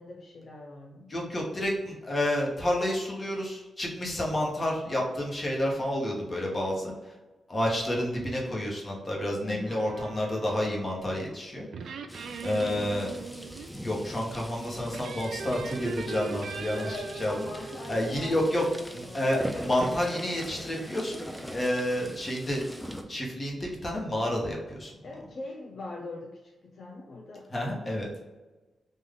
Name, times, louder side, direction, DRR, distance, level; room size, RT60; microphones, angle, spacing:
voice 1, 0.0-1.4 9.4-9.8 16.7-19.2 25.0-27.5, left 2 dB, 60° left, -1 dB, 0.5 m, -42 dB
voice 2, 1.1-6.9 7.5-11.9 12.4-13.1 13.8-17.3 17.9-18.6 18.9-22.6 23.1-24.9 27.5-28.1, left 1 dB, 30° left, -2 dB, 1.1 m, -30 dB
sound 1, 9.7-11.1 11.7-13.7 14.9-18.4, right 5 dB, 85° right, 0.3 m, -40 dB
sound 2, 12.1-23.0, equal, 5° left, 0.4 m, -41 dB
3.5 x 2.6 x 3.7 m, 1.1 s
cardioid pair, 95°, 0 cm